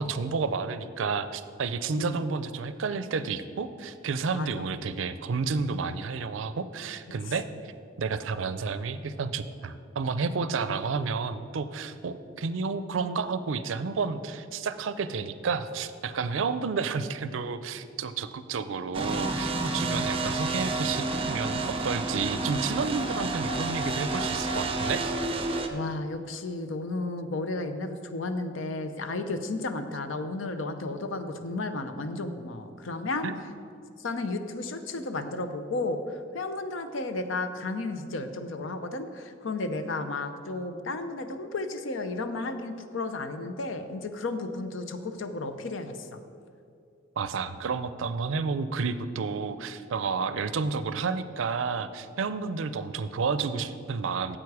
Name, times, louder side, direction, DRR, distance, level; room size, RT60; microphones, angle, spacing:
voice 1, 0.0-7.7 8.0-25.0 33.2-33.4 47.2-54.4, right 5 dB, 80° right, 13 dB, 0.5 m, -31 dB
voice 2, 4.3-4.7 19.8-20.3 25.7-33.3 34.0-46.2, left 2 dB, 80° left, 9 dB, 0.7 m, -33 dB
sound 1, 18.9-25.7, right 2 dB, 30° right, 0.7 m, -30 dB
9.4 x 7.5 x 4.8 m, 2.4 s
head